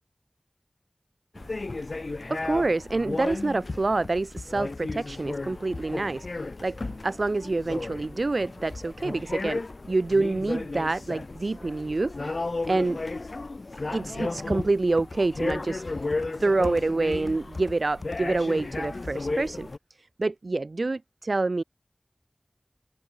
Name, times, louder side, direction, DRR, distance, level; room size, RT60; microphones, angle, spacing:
sound 1, 1.4-19.8, left 3 dB, 80° left, 6.5 m, -34 dB
voice 1, 2.3-9.6 9.9-13.0 13.9-16.0 16.4-19.7 20.0-21.6, right 3 dB, 80° right, 7.0 m, -27 dB
wide cardioid pair, 45°, 0 cm